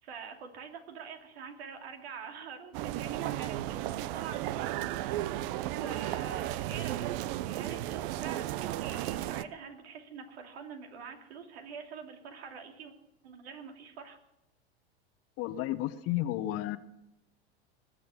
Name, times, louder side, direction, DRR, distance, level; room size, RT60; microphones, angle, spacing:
voice 1, 0.0-4.6 5.0-12.9 13.2-14.2, right 6 dB, 70° right, 4 dB, 2.8 m, -45 dB
sound 1, 2.7-9.4, right 14 dB, 55° right, 0.7 m, -34 dB
voice 2, 15.4-16.8, left 14 dB, 45° left, 13 dB, 1.0 m, -32 dB
20.5 x 7.5 x 7.0 m, 0.88 s
hypercardioid pair, 90°, 32 cm